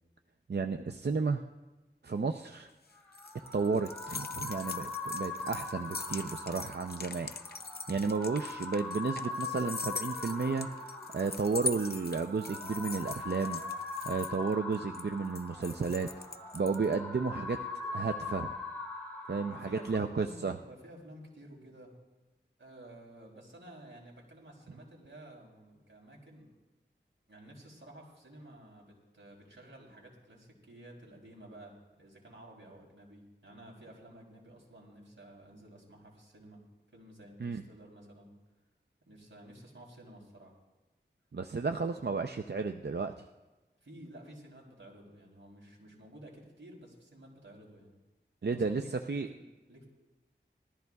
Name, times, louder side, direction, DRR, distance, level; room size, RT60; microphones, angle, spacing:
voice 1, 0.5-1.4 2.0-2.7 3.5-7.3 7.9-10.7 11.1-13.6 14.0-16.1 16.5-17.6 17.9-18.5 19.3-20.6 37.4-37.6 41.3-43.3 48.4-48.8 49.1-49.3, right 4 dB, 60° right, 6 dB, 0.5 m, -32 dB
sound 1, 2.7-16.9, left 3 dB, 55° left, 0.6 m, -42 dB
sound 2, 3.0-20.0, left 3 dB, 5° left, 4.0 m, -41 dB
sound 3, 3.4-19.9, left 1 dB, 35° left, 4.1 m, -58 dB
voice 2, 19.5-21.9 22.6-26.5 27.3-36.6 36.9-38.3 39.0-40.6 43.8-47.9 48.4-49.9, right 1 dB, 80° right, -2 dB, 3.4 m, -52 dB
20.0 x 13.5 x 2.3 m, 1.1 s
wide cardioid pair, 45°, 20 cm